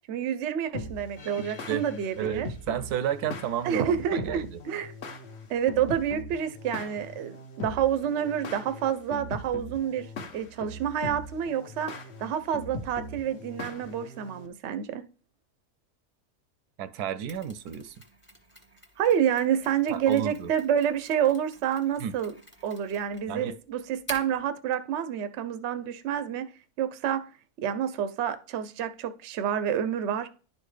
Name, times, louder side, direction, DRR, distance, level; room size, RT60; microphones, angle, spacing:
voice 1, 0.1-2.5 3.6-5.0 5.5-11.9 12.2-15.0 19.0-22.3 22.6-26.5 26.8-27.3 27.6-30.3, right 9 dB, 60° right, 0.8 m, -28 dB
sound 1, 0.7-14.5, left 2 dB, 50° left, 1.0 m, -40 dB
voice 2, 1.4-1.9 2.2-4.6 16.8-18.0 19.9-20.5 22.0-22.2 23.3-23.5, right 9 dB, 85° right, 1.1 m, -32 dB
Mechanisms, 17.3-24.5, equal, 10° left, 1.1 m, -48 dB
10.5 x 4.3 x 3.2 m
omnidirectional pair, 1.6 m